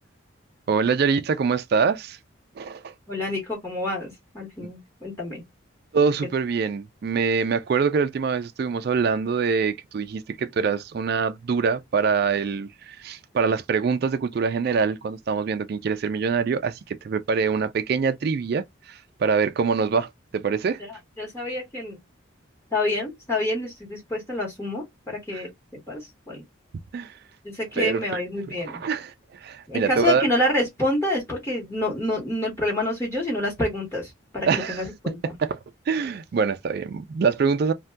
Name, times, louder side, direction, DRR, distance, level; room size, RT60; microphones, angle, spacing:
voice 1, 0.7-2.2 2.6-2.9 4.6-4.7 5.9-20.8 25.3-25.4 26.9-27.1 27.7-28.2 28.6-30.2 34.5-34.8 35.2-35.6 35.9-37.7, right 5 dB, 50° right, 0.3 m, -24 dB
voice 2, 3.1-5.4 19.9-20.0 20.9-22.0 22.7-25.5 25.9-26.0 26.3-26.4 27.4-28.8 29.7-35.3, left 1 dB, 15° left, 1.1 m, -27 dB
2.6 x 2.2 x 3.3 m
head